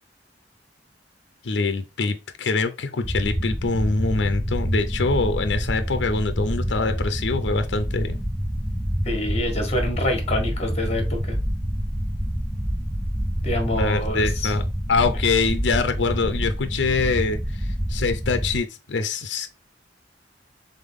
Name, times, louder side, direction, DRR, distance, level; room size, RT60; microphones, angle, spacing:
voice 1, 1.4-8.2 13.7-14.6 14.9-19.5, left 4 dB, 70° left, 0.5 m, -24 dB
sound 1, 3.0-18.6, equal, 5° right, 0.3 m, -27 dB
voice 2, 9.0-11.4 13.4-14.5, left 1 dB, 35° left, 1.4 m, -26 dB
3.8 x 3.5 x 3.6 m
head